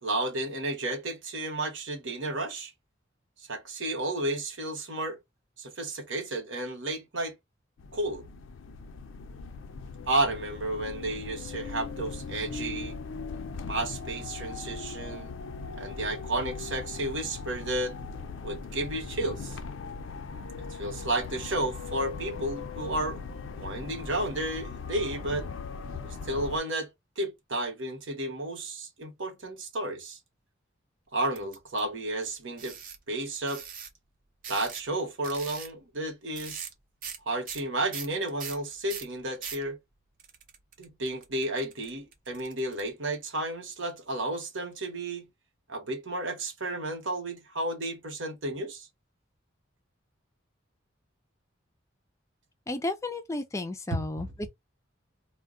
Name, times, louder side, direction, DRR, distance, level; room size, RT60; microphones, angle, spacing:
voice 1, 0.0-2.7 3.5-5.2 5.6-7.3 7.9-8.2 10.1-12.9 13.7-15.3 15.8-18.0 18.4-19.6 20.7-23.2 23.6-25.5 26.0-26.9 27.2-30.2 31.1-32.8 33.1-33.6 34.5-36.7 37.3-39.8 40.8-45.3 45.7-48.9 53.9-54.5, right 1 dB, 80° right, 1.0 m, -32 dB
sound 1, 7.8-26.6, left 4 dB, 90° left, 0.4 m, -39 dB
sound 2, 31.4-31.8 32.6-33.0 33.5-33.9 34.4-34.9 35.2-35.7 36.4-36.7 37.0-37.2 37.5-39.6 40.2-42.8, right 7 dB, 45° right, 0.6 m, -41 dB
voice 2, 52.7-54.5, left 2 dB, 15° left, 0.4 m, -33 dB
2.3 x 2.1 x 3.6 m
head